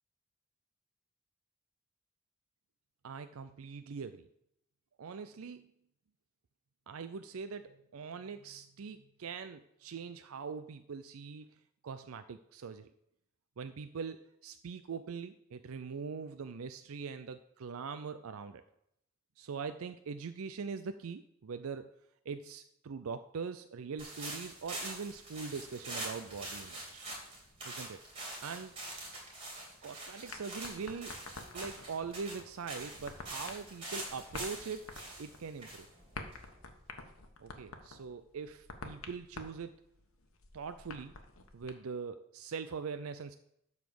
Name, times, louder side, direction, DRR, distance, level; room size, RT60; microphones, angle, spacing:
voice 1, 3.0-4.3 5.0-5.7 6.9-11.6 11.8-12.9 13.6-18.6 19.4-21.9 22.3-27.1 27.6-28.0 28.4-28.7 29.8-31.1 31.5-34.8 35.2-35.9 37.4-39.8 40.5-41.2 41.5-43.4, right 5 dB, 80° right, 10 dB, 0.5 m, -42 dB
sound 1, 24.0-36.8, right 2 dB, 25° right, 3.0 m, -45 dB
sound 2, 30.3-41.7, left 3 dB, 75° left, 1.2 m, -49 dB
12.0 x 4.1 x 6.9 m, 0.76 s
head